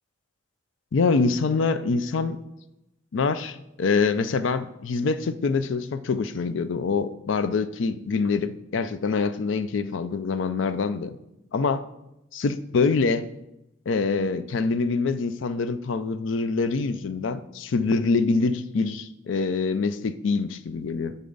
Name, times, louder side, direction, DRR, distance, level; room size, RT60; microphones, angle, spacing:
voice 1, 0.9-2.4 3.1-11.2 11.5-11.8 12.3-13.3 13.9-21.2, left 4 dB, 70° left, 0.4 m, -25 dB
10.0 x 4.2 x 3.9 m
head